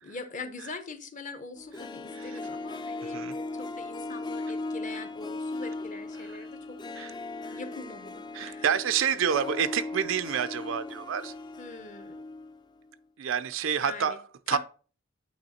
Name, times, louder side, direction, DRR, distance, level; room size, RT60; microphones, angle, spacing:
voice 1, 0.0-6.8 7.5-8.7 11.6-12.2 13.8-14.2 14.5-14.6, left 4 dB, 40° left, 0.8 m, -42 dB
Harp, 1.6-12.6 12.8-12.9, left 2 dB, 20° left, 0.4 m, -38 dB
voice 2, 8.3-11.3 13.2-14.2 14.5-14.6, right 7 dB, 90° right, 0.5 m, -28 dB
8.8 x 3.2 x 4.2 m
head